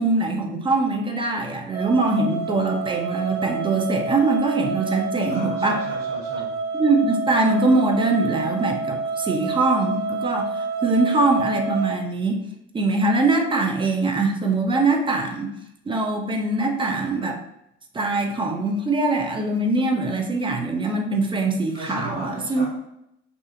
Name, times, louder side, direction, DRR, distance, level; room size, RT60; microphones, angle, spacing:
voice 1, 0.0-5.8 6.7-12.4 12.7-15.5 15.9-17.4 17.9-22.7, right 2 dB, 15° right, 2 dB, 0.3 m, -22 dB
sound 1, 1.7-12.0, right 4 dB, 50° right, 0.8 m, -29 dB
voice 2, 5.3-6.5 21.7-22.7, equal, 90° right, -7 dB, 1.1 m, -35 dB
2.4 x 2.4 x 2.5 m, 0.80 s
hypercardioid pair, 60°, 36 cm